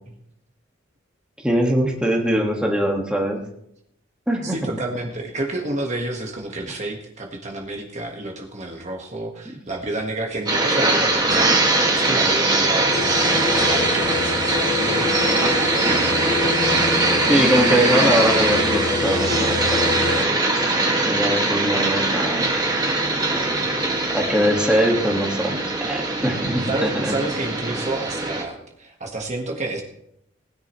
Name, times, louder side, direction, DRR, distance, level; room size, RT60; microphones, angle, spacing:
voice 1, 1.4-3.4 4.3-4.6 17.3-20.4 21.0-22.5 24.1-27.1, equal, 5° right, 0 dB, 1.7 m, -22 dB
voice 2, 4.4-16.1 26.6-29.8, right 2 dB, 35° right, 2 dB, 1.5 m, -30 dB
sound 1, 10.5-28.4, right 2 dB, 20° right, 1.8 m, -21 dB
sound 2, 12.9-20.3, left 5 dB, 40° left, 0.4 m, -28 dB
19.5 x 10.5 x 3.1 m, 0.77 s
head